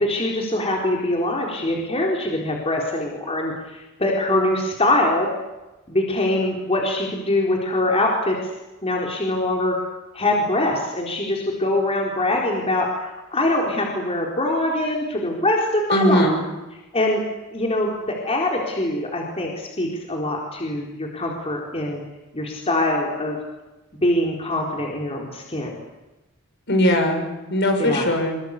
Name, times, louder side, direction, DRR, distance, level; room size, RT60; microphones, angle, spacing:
voice 1, 0.0-5.3 5.9-8.4 8.8-9.7 10.1-12.9 13.3-16.3 16.9-17.2 17.5-22.0 22.3-23.4 24.0-25.8 27.8-28.0, left 1 dB, 30° left, -1 dB, 4.1 m, -23 dB
voice 2, 15.9-16.4 26.7-28.4, equal, 55° left, 5 dB, 6.1 m, -20 dB
24.5 x 24.0 x 8.4 m, 1.1 s
head